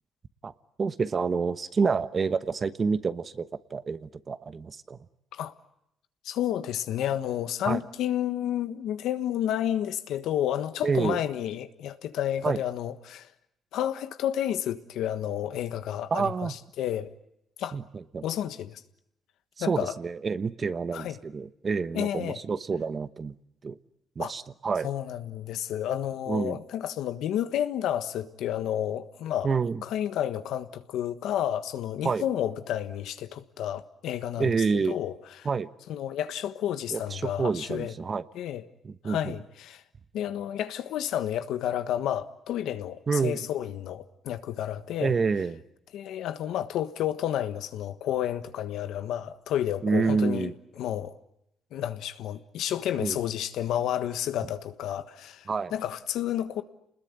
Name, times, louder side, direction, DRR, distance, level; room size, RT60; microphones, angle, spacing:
voice 1, 0.8-5.0 7.6-7.8 10.8-11.2 12.4-12.6 16.1-16.6 17.7-18.2 19.6-23.3 23.6-23.7 24.2-24.9 26.3-26.6 29.4-29.8 32.0-32.2 34.4-35.0 35.4-35.7 36.9-38.2 38.8-39.3 43.1-43.4 45.0-45.6 49.8-50.5 53.0-53.2 55.5-55.7, right 5 dB, 40° right, 1.1 m, -28 dB
voice 2, 6.2-13.3 13.7-17.1 17.6-17.8 18.2-18.8 19.6-19.9 20.9-21.2 21.9-22.4 24.2-24.3 24.8-29.5 29.8-35.5 35.9-37.9 38.3-38.7 39.0-39.8 40.1-45.2 45.9-51.2 51.7-56.6, left 11 dB, 85° left, 1.4 m, -31 dB
28.5 x 20.5 x 9.7 m
cardioid pair, 90°, 0 cm